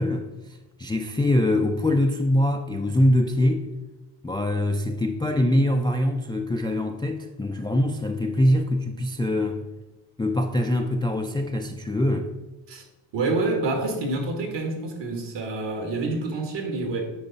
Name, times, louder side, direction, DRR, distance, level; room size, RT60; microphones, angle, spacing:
voice 1, 0.0-3.7 4.2-9.6 10.2-12.3, left 1 dB, 10° left, 0.3 m, -23 dB
voice 2, 13.1-17.1, right 3 dB, 60° right, 1.8 m, -27 dB
9.0 x 4.7 x 4.0 m
cardioid pair, 120°, 47 cm